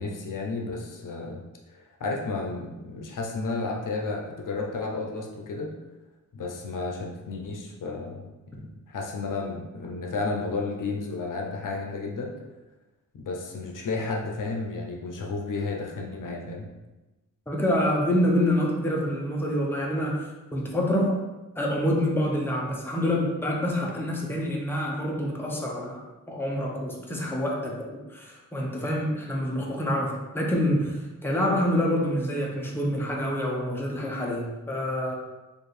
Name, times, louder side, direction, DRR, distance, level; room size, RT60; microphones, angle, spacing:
voice 1, 0.0-1.4 1.7-5.7 6.3-12.4 13.1-16.7, left 3 dB, 75° left, 1 dB, 0.6 m, -32 dB
voice 2, 17.5-20.2 20.5-21.2 21.6-26.0 26.3-35.1, equal, 5° left, -2 dB, 0.7 m, -27 dB
4.4 x 2.5 x 3.2 m, 1.1 s
wide cardioid pair, 105°, 32 cm